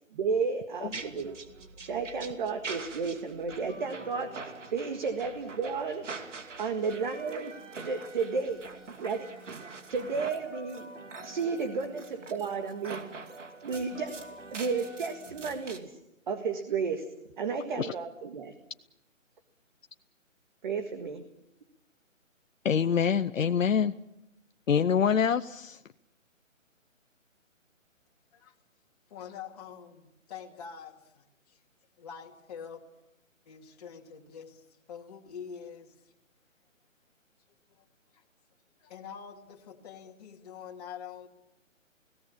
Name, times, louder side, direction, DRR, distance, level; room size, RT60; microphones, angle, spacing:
voice 1, 0.1-1.4 1.8-6.1 6.6-7.6 7.8-8.7 9.0-9.3 9.9-10.9 11.2-13.1 13.6-14.2 14.5-16.0 16.3-17.1 17.4-18.5 20.6-21.2, right 5 dB, 35° right, 6 dB, 1.8 m, -32 dB
sound 1, 0.9-15.8, right 4 dB, 65° right, 2.7 m, -44 dB
voice 2, 22.6-23.9 24.7-25.8, left 7 dB, 75° left, 10 dB, 0.9 m, -25 dB
voice 3, 29.1-31.6 32.0-32.8 33.5-36.1 37.8-37.9 38.1-38.2 38.8-41.3, left 7 dB, 30° left, 0 dB, 2.4 m, -45 dB
29.5 x 18.0 x 7.2 m, 0.85 s
hypercardioid pair, 165°, 40 cm